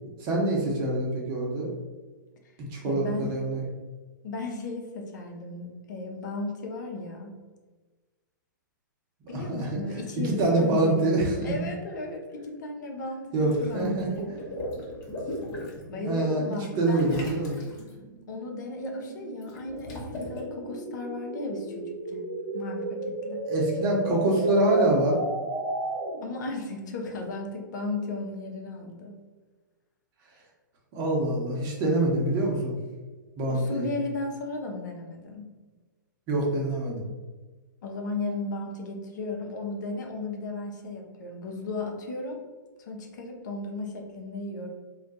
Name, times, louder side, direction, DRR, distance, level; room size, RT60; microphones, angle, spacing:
voice 1, 0.2-1.7 2.6-3.6 9.3-9.8 10.2-11.7 13.3-14.1 15.9-17.6 23.5-25.2 30.9-32.7 33.4-33.9 36.3-37.0, right 2 dB, 35° right, -2 dB, 0.8 m, -25 dB
voice 2, 2.8-3.3 4.2-7.3 9.3-11.1 11.4-14.3 15.9-17.1 18.3-22.2 22.5-23.4 26.2-29.1 33.5-35.5 37.8-42.4 42.9-44.7, left 3 dB, 65° left, 2 dB, 0.6 m, -35 dB
Water / Liquid, 13.3-15.8 16.9-17.9 19.4-20.4, left 1 dB, 30° left, 0.9 m, -37 dB
sound 1, 15.0-26.4, right 1 dB, 80° right, 0.7 m, -35 dB
2.4 x 2.2 x 3.9 m, 1.3 s
hypercardioid pair, 130°, 11 cm